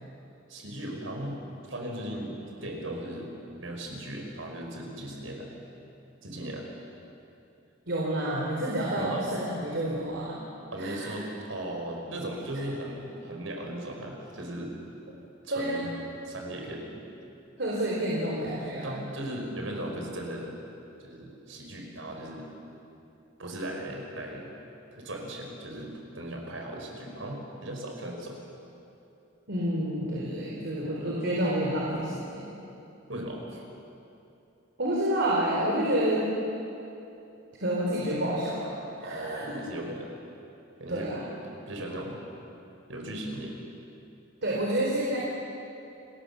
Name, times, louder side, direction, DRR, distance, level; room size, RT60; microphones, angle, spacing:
voice 1, 0.5-1.4 1.7-3.3 3.6-5.6 6.2-6.7 8.9-9.3 10.7-14.7 15.4-15.9 16.2-17.0 18.8-20.5 21.0-22.5 23.4-24.5 24.9-28.4 33.1-33.6 39.0-40.1 40.8-41.2 41.7-42.2 42.9-43.6, right 1 dB, 85° right, 1 dB, 5.3 m, -37 dB
voice 2, 7.9-10.4 10.8-11.1 15.5-15.9 17.6-19.0 29.5-32.5 34.8-36.3 37.6-38.7 39.0-39.6 40.9-41.2 44.4-45.2, right 1 dB, 65° right, -4 dB, 4.2 m, -29 dB
29.5 x 20.5 x 7.1 m, 2.8 s
head